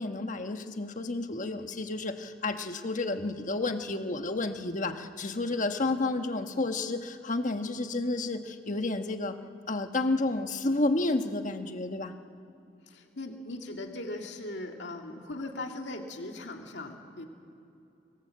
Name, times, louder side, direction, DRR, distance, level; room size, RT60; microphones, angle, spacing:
voice 1, 0.0-9.4 9.7-12.1, left 2 dB, 45° left, 7 dB, 1.3 m, -31 dB
voice 2, 12.9-17.2, left 2 dB, 80° left, 2 dB, 2.1 m, -39 dB
24.5 x 18.0 x 7.6 m, 2.7 s
head